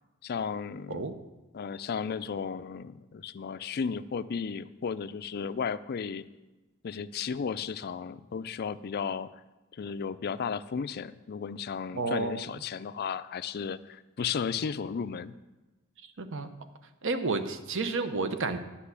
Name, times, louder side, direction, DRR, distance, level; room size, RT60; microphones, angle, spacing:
voice 1, 0.2-1.1 1.5-6.2 6.8-9.3 9.7-15.3, left 6 dB, 45° left, 14 dB, 0.4 m, -34 dB
voice 2, 11.9-12.5 16.0-16.5 17.0-18.6, right 3 dB, 60° right, 9 dB, 0.8 m, -31 dB
10.0 x 5.7 x 8.3 m, 1.1 s
head